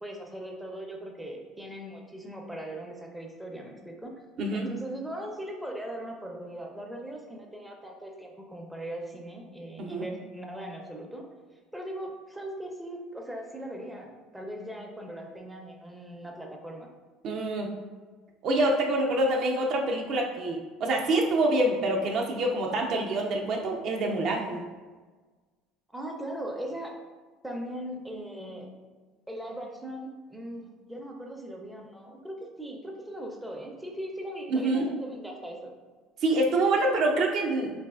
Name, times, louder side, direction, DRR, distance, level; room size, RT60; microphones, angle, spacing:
voice 1, 0.0-4.1 4.5-11.2 11.7-16.9 25.9-26.9 27.4-28.7 29.3-35.7, right 1 dB, 5° right, 1 dB, 0.4 m, -39 dB
voice 2, 4.4-4.7 9.8-10.0 17.2-17.7 18.4-24.6 34.5-34.8 36.2-37.7, right 2 dB, 50° right, 1 dB, 0.5 m, -26 dB
3.9 x 2.4 x 2.3 m, 1.4 s
cardioid pair, 125°, 0 cm